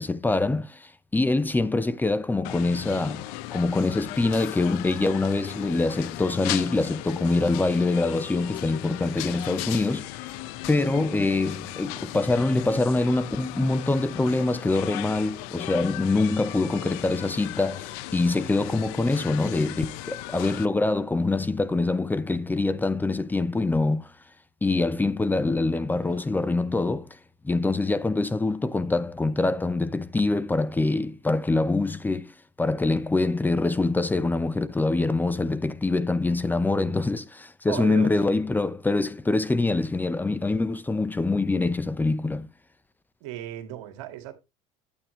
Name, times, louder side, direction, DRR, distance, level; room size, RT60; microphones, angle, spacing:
voice 1, 0.0-10.2 10.7-24.1 24.6-27.2 27.4-42.5, left 3 dB, 10° left, 0.7 m, -25 dB
sound 1, 2.4-20.7, left 16 dB, 75° left, 0.7 m, -37 dB
voice 2, 37.7-38.4 43.2-44.3, right 13 dB, 80° right, 1.9 m, -36 dB
10.0 x 8.7 x 3.1 m
supercardioid pair, 100°, 16 cm